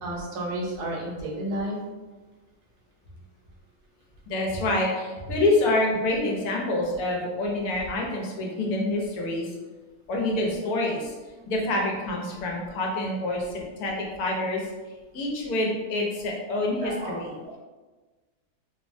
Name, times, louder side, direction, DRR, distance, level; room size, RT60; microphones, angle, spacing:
voice 1, 0.0-1.8 16.8-17.5, right 1 dB, 85° right, -3 dB, 1.3 m, -32 dB
voice 2, 4.3-9.5 10.1-11.1 11.5-14.7 15.1-17.6, left 2 dB, 75° left, -1 dB, 1.1 m, -27 dB
3.1 x 2.2 x 2.4 m, 1.3 s
omnidirectional pair, 1.7 m